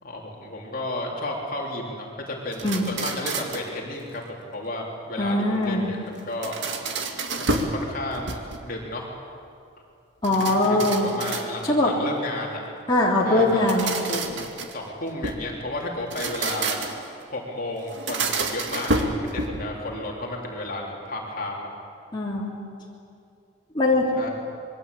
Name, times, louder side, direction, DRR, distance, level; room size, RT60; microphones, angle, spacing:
voice 1, 0.0-6.6 7.4-9.1 10.3-12.6 13.2-14.5 14.7-16.8 17.3-21.7 24.2-24.3, left 1 dB, 45° left, -1 dB, 3.6 m, -33 dB
sound 1, 2.5-3.7 6.2-7.8 8.1-8.8 10.2-11.9 13.4-15.5 16.0-17.1 17.9-19.7, right 3 dB, 65° right, 2.2 m, -29 dB
voice 2, 5.2-6.0 10.2-11.1 11.7-11.9 12.9-13.9 22.1-22.5 23.7-24.1, left 1 dB, 25° left, -5 dB, 3.2 m, -21 dB
26.5 x 22.5 x 8.4 m, 2.5 s
head